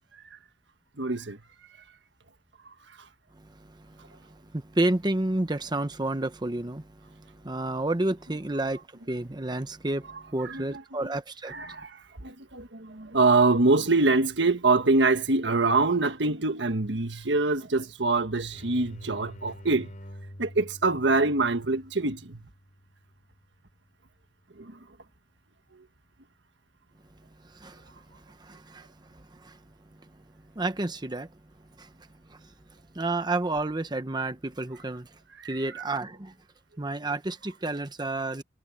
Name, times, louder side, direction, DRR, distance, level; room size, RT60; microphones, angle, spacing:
voice 1, 1.0-1.4 2.6-2.7 10.4-11.1 11.5-19.9 20.4-22.4 24.6-24.8 25.7-25.8 35.4-35.5, right 3 dB, 75° right, 1.6 m, -25 dB
voice 2, 3.3-11.8 27.4-29.6 30.0-30.1 30.5-31.3 31.8-31.9 32.3-32.5 32.9-35.2 35.5-36.3 36.8-38.4, right 2 dB, 25° right, 0.9 m, -31 dB
sound 1, 18.5-24.0, equal, 45° left, 7.3 m, -48 dB
head